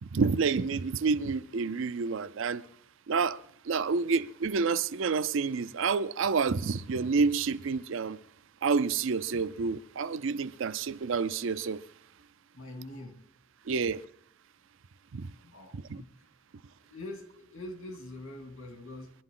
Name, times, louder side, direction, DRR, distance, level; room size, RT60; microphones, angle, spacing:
voice 1, 0.0-2.6 3.1-8.2 8.6-11.8 13.7-14.0 15.1-15.3 15.7-16.0, right 5 dB, 65° right, 0.5 m, -29 dB
voice 2, 12.5-13.2 15.4-16.2 16.8-19.1, left 1 dB, 90° left, 2.7 m, -44 dB
22.5 x 11.5 x 3.8 m
head